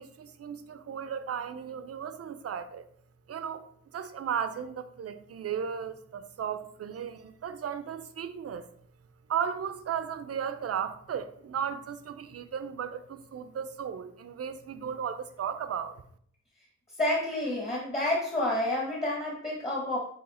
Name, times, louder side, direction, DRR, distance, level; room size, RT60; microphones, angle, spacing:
voice 1, 0.0-2.8 3.3-3.6 3.9-8.6 9.3-16.0, right 8 dB, 55° right, 0.6 m, -35 dB
voice 2, 17.0-20.0, left 1 dB, 20° left, 1.5 m, -29 dB
8.7 x 3.0 x 4.3 m
wide cardioid pair, 125°, 30 cm